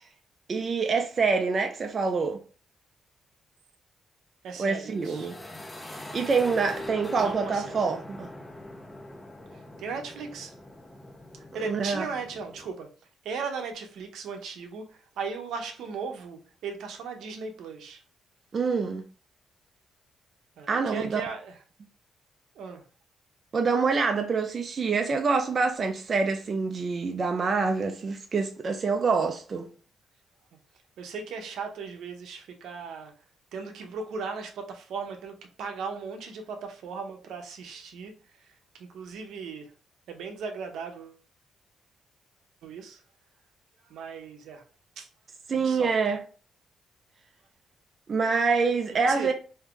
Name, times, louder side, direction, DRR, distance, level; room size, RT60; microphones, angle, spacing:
voice 1, 0.5-2.4 4.6-5.4 5.9-8.3 11.6-12.0 18.5-19.0 20.7-21.2 23.5-29.7 45.5-46.2 48.1-49.3, right 4 dB, 45° right, 0.4 m, -26 dB
voice 2, 4.4-5.3 7.2-7.8 9.5-10.5 11.5-12.9 13.2-18.0 20.6-21.6 22.5-22.8 31.0-33.1 33.5-39.7 40.1-41.2 42.6-43.0 43.9-44.6 45.0-45.1 45.5-45.9 48.9-49.3, right 5 dB, 80° right, 0.7 m, -37 dB
sound 1, 4.9-12.7, left 1 dB, 15° left, 0.5 m, -43 dB
2.6 x 2.3 x 3.6 m
cardioid pair, 75°, 0 cm